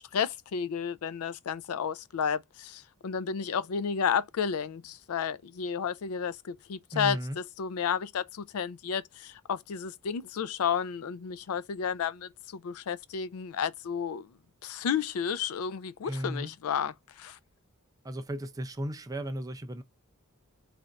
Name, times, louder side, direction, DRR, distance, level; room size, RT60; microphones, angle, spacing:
voice 1, 0.0-14.3 14.6-17.4, left 7 dB, 75° left, 0.4 m, -32 dB
voice 2, 6.9-7.4 16.0-16.5 18.0-19.8, equal, 15° right, 0.4 m, -35 dB
3.3 x 2.5 x 3.9 m
head